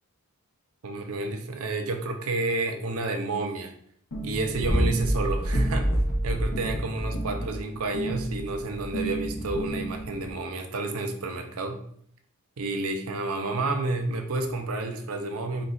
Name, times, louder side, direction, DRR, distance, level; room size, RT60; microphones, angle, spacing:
voice 1, 0.8-3.7 4.2-5.9 6.2-11.8 12.6-15.6, right 2 dB, 70° right, 5 dB, 0.6 m, -30 dB
sound 1, 4.1-10.3, right 1 dB, 80° left, 1.1 m, -28 dB
4.5 x 2.5 x 3.9 m, 0.65 s
head